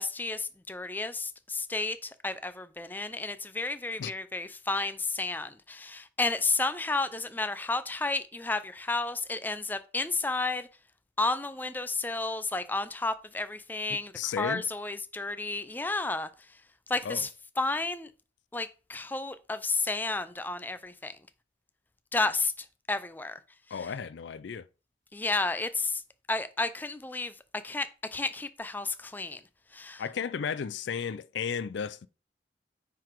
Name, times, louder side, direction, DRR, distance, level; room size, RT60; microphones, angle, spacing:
voice 1, 0.0-10.7 11.2-16.3 16.9-17.3 17.6-18.1 18.5-21.2 22.1-23.4 23.7-23.9 25.1-26.0 26.3-27.3 27.6-29.4 29.7-30.0, left 3 dB, 10° left, 0.4 m, -32 dB
voice 2, 13.9-14.6 17.0-17.2 23.7-24.7 30.0-32.1, left 7 dB, 80° left, 0.4 m, -34 dB
9.3 x 3.9 x 4.6 m
head